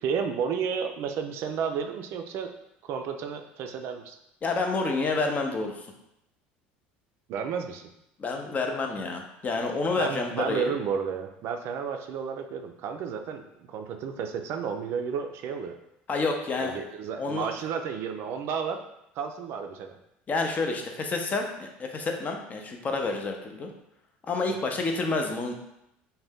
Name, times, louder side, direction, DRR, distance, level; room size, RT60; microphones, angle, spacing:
voice 1, 0.0-2.5 2.8-4.2 7.3-7.8 10.0-13.4 13.7-15.7 16.6-18.8 19.2-19.9 24.6-24.8, right 6 dB, 60° right, 6 dB, 0.3 m, -32 dB
voice 2, 4.4-5.9 8.2-10.7 16.1-16.8 17.2-17.5 20.3-23.7 24.3-25.5, left 3 dB, 35° left, 3 dB, 0.5 m, -29 dB
2.6 x 2.1 x 3.4 m, 0.83 s
supercardioid pair, 85°, 5 cm